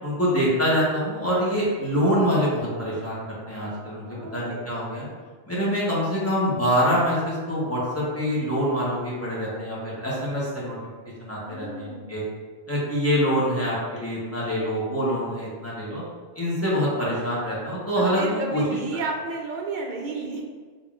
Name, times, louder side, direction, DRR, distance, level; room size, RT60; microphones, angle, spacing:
voice 1, 0.0-4.1 4.3-5.1 5.5-10.8 11.2-12.2 12.7-16.0 16.3-18.6, equal, 15° left, -7 dB, 0.9 m, -25 dB
voice 2, 4.0-4.7 11.4-12.2 17.9-20.4, right 3 dB, 60° right, 1 dB, 0.7 m, -32 dB
3.8 x 3.5 x 2.4 m, 1.5 s
omnidirectional pair, 1.0 m